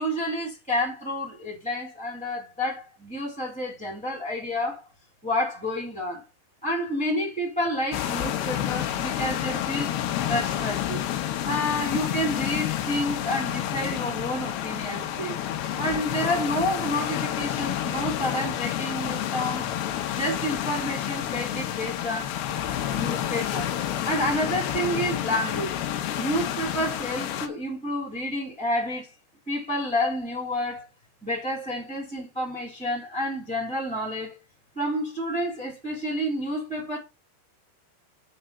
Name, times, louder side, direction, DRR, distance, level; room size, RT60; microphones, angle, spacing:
voice 1, 0.0-4.8 5.2-6.2 6.6-9.9 10.3-11.0 11.4-15.4 15.8-19.7 20.2-22.3 22.9-23.7 24.0-25.7 26.2-29.1 29.5-30.9 31.2-34.4 34.7-37.0, equal, ahead, 2.3 m, -29 dB
sound 1, 7.9-27.5, left 11 dB, 75° left, 3.0 m, -29 dB
8.0 x 4.9 x 6.7 m
omnidirectional pair, 5.0 m